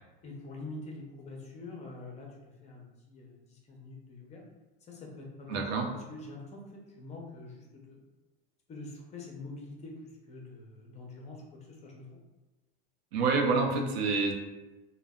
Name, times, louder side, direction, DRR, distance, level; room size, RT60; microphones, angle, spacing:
voice 1, 0.2-4.4 4.8-8.0 8.7-12.2, left 2 dB, 25° left, -1 dB, 0.5 m, -45 dB
voice 2, 5.5-5.9 13.1-14.3, right 4 dB, 85° right, 2 dB, 0.6 m, -27 dB
2.0 x 2.0 x 3.5 m, 1.1 s
supercardioid pair, 130°, 30 cm